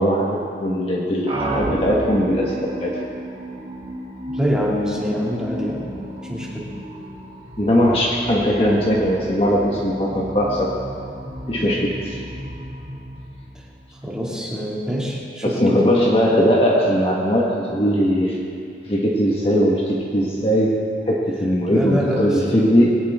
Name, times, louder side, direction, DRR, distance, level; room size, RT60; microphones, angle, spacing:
voice 1, 0.0-3.0 7.6-10.7 11.5-12.2 15.4-18.4 18.9-23.0, equal, 35° left, -3 dB, 1.6 m, -19 dB
sound 1, 1.3-14.1, equal, 30° right, 2.4 m, -33 dB
voice 2, 4.3-5.9 6.2-6.7 13.5-13.6 13.9-15.8 21.7-22.4, equal, 5° right, -5 dB, 2.6 m, -25 dB
21.5 x 17.5 x 3.7 m, 2.5 s
head